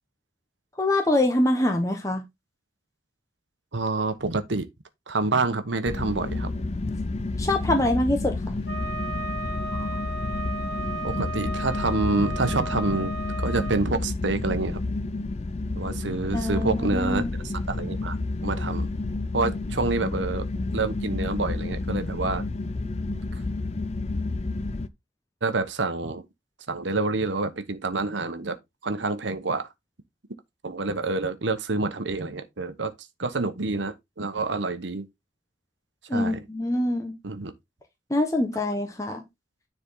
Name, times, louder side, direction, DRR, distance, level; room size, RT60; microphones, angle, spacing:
voice 1, 0.8-2.2 7.4-8.6 16.3-17.3 36.1-37.1 38.1-39.2, left 1 dB, 15° left, 1.1 m, -24 dB
voice 2, 3.7-4.7 5.1-6.5 9.7-10.0 11.0-14.8 15.8-18.2 18.4-18.9 19.3-22.4 25.4-26.2 26.7-28.6 28.8-29.7 30.6-32.9 33.2-35.0 36.1-36.4 37.2-37.5, right 3 dB, 80° right, 1.1 m, -27 dB
sound 1, 5.8-24.9, left 2 dB, 35° left, 0.5 m, -30 dB
Wind instrument woodwind instrument, 8.7-13.8, right 2 dB, 60° left, 2.0 m, -35 dB
10.0 x 4.2 x 3.9 m
head